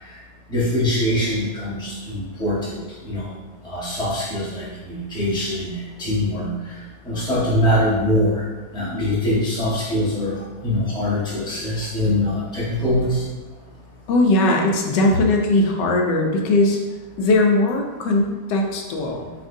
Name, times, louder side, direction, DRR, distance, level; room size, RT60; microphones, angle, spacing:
voice 1, 0.5-2.8 3.0-3.3 3.6-6.8 7.0-8.4 8.7-10.3 10.6-13.2, left 1 dB, 5° left, -8 dB, 0.8 m, -23 dB
voice 2, 14.1-16.8 17.2-19.3, left 2 dB, 85° left, 1 dB, 1.3 m, -19 dB
6.9 x 2.5 x 2.6 m, 1.3 s
omnidirectional pair, 1.9 m